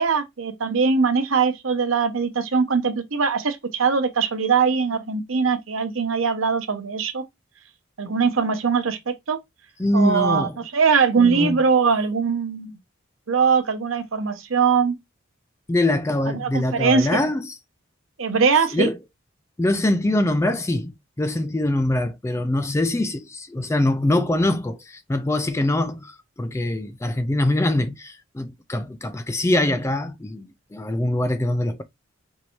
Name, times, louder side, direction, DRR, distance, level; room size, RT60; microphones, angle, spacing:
voice 1, 0.0-7.2 8.0-9.4 9.9-12.8 13.3-15.0 16.4-17.2 18.2-18.9, right 5 dB, 85° right, 0.8 m, -21 dB
voice 2, 9.8-10.5 11.2-11.6 15.7-17.5 18.7-19.0 19.6-31.8, left 1 dB, 15° left, 0.3 m, -23 dB
4.5 x 2.6 x 2.9 m
head